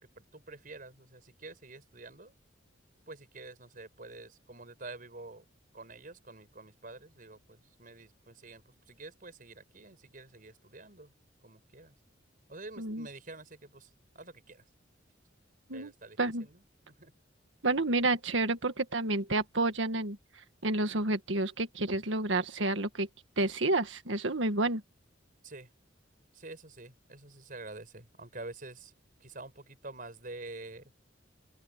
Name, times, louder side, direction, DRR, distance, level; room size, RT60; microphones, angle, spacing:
voice 1, 0.0-2.4 3.1-5.5 5.7-11.1 11.4-12.0 12.5-14.6 15.7-17.1 21.9-22.1 25.4-25.7 26.3-28.9 29.2-30.9, right 2 dB, 45° right, 5.5 m, -48 dB
voice 2, 17.6-20.2 20.6-23.1 23.4-24.8, right 2 dB, 80° right, 1.7 m, -29 dB
open air
head